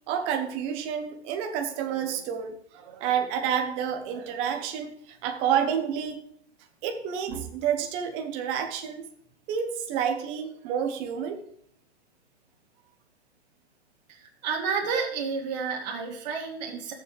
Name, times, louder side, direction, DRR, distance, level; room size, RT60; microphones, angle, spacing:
voice 1, 0.1-6.2 6.8-9.0 9.5-11.4, right 8 dB, 20° right, 5 dB, 0.8 m, -29 dB
voice 2, 14.1-16.9, right 5 dB, 40° right, -1 dB, 2.0 m, -30 dB
15.5 x 7.1 x 3.3 m, 0.65 s
hypercardioid pair, 165°, 33 cm